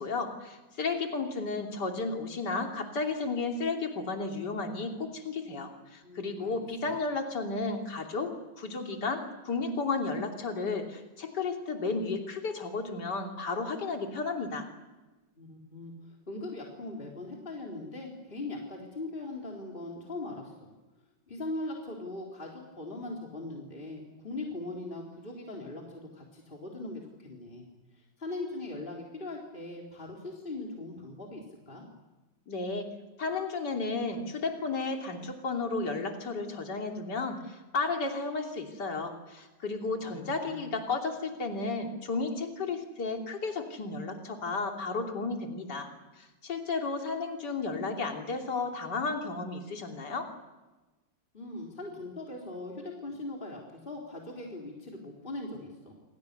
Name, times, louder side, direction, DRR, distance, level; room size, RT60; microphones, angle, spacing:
voice 1, 0.0-8.3 8.6-14.7 32.5-32.9 33.2-45.9 46.2-50.3, left 3 dB, 60° left, 2 dB, 3.6 m, -33 dB
voice 2, 6.0-6.6 15.4-20.7 21.3-27.6 27.9-31.8 39.9-40.7 51.3-55.9, left 2 dB, 25° left, -1 dB, 4.1 m, -40 dB
27.5 x 27.0 x 6.9 m, 1.2 s
omnidirectional pair, 2.1 m